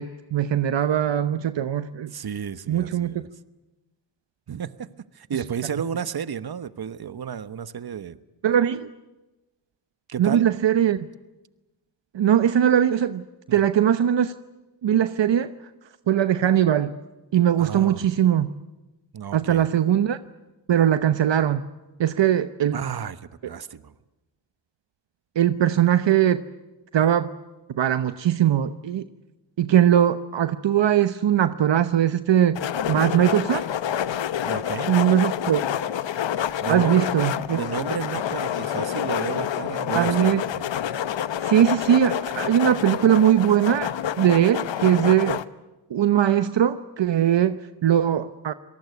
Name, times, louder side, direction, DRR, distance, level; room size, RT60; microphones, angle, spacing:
voice 1, 0.0-2.1 2.7-3.1 8.4-8.9 10.2-11.0 12.1-13.2 13.5-14.3 14.8-15.5 16.1-17.0 17.3-18.5 19.3-20.2 20.7-21.6 22.0-22.8 25.4-26.4 26.9-27.3 27.7-29.0 29.6-32.6 32.9-33.6 34.9-35.6 36.7-37.6 39.9-40.4 41.4-45.4 45.9-48.5, right 10 dB, 75° right, 12 dB, 0.9 m, -20 dB
voice 2, 2.1-3.3 4.5-4.9 5.1-8.2 10.1-10.5 13.5-13.6 17.6-18.0 19.1-19.7 22.7-23.9 34.4-34.9 36.6-40.7, right 7 dB, 55° right, 14 dB, 1.2 m, -32 dB
sound 1, 32.6-45.4, left 10 dB, 80° left, 0.9 m, -28 dB
27.0 x 19.0 x 9.5 m, 1.1 s
cardioid pair, 70°, 44 cm